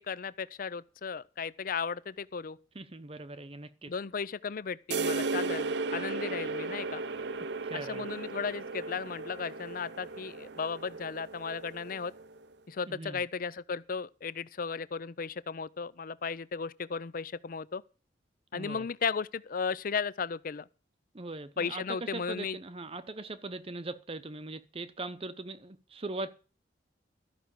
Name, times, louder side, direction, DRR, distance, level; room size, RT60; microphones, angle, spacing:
voice 1, 0.0-2.6 3.9-7.0 7.7-12.1 12.7-17.8 18.5-20.6 21.6-22.6, left 5 dB, 50° left, 0.5 m, -35 dB
voice 2, 2.7-3.9 7.6-8.1 12.9-13.2 18.5-18.9 21.1-26.3, right 2 dB, 30° right, 0.8 m, -40 dB
sound 1, 4.9-12.4, right 3 dB, 65° right, 0.6 m, -36 dB
13.5 x 5.9 x 8.4 m
head